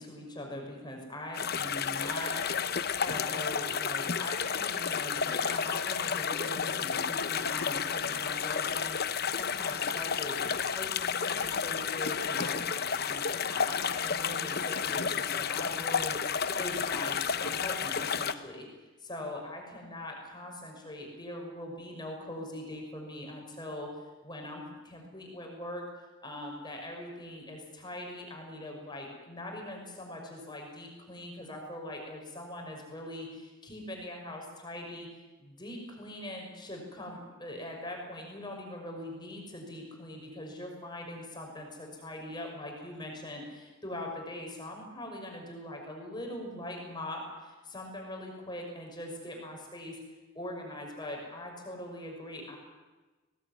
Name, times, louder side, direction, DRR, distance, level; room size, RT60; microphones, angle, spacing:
voice 1, 0.0-2.7 3.0-18.7 19.0-25.8 26.2-50.0 50.3-52.6, left 1 dB, 20° left, 1 dB, 5.7 m, -42 dB
sound 1, 1.3-18.3, left 6 dB, 50° left, 0.9 m, -31 dB
22.5 x 18.0 x 9.5 m, 1.2 s
head